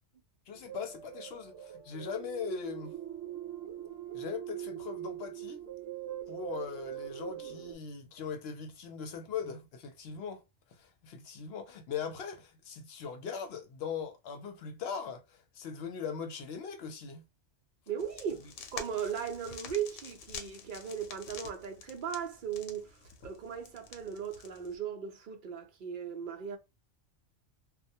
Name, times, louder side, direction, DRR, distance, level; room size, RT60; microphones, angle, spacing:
voice 1, 0.5-3.0 4.1-5.7 6.3-10.4 10.7-17.3, left 6 dB, 65° left, 0.8 m, -40 dB
sound 1, 0.5-7.8, right 11 dB, 70° right, 1.0 m, -42 dB
voice 2, 17.9-23.0 23.2-26.6, right 8 dB, 55° right, 0.6 m, -37 dB
sound 2, 18.0-24.8, left 6 dB, 90° left, 1.0 m, -48 dB
2.2 x 2.1 x 2.7 m
omnidirectional pair, 1.2 m